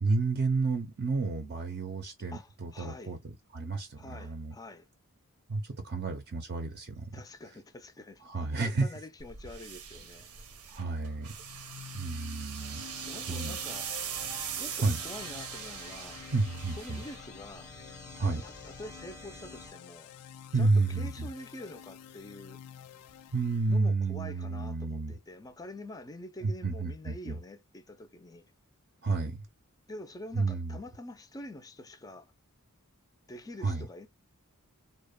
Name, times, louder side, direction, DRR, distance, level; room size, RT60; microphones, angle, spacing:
voice 1, 0.0-4.5 5.5-7.2 8.2-8.9 10.7-11.3 11.9-12.8 13.3-13.6 14.8-15.0 16.3-17.0 18.2-18.4 20.5-21.3 23.3-25.2 26.4-27.4 29.0-29.5 30.3-30.8 33.6-33.9, right 3 dB, 45° right, 0.5 m, -31 dB
voice 2, 2.3-3.2 4.0-4.8 7.1-10.3 13.0-13.9 14.6-16.2 16.7-17.7 18.2-20.1 20.6-20.7 21.0-22.6 23.7-28.5 29.9-32.3 33.3-34.1, left 1 dB, 15° left, 0.4 m, -46 dB
sound 1, 9.2-17.8, right 8 dB, 90° right, 0.7 m, -41 dB
sound 2, 11.2-23.8, left 9 dB, 90° left, 0.3 m, -49 dB
sound 3, 12.6-19.7, equal, 10° right, 0.7 m, -52 dB
2.8 x 2.0 x 2.2 m
head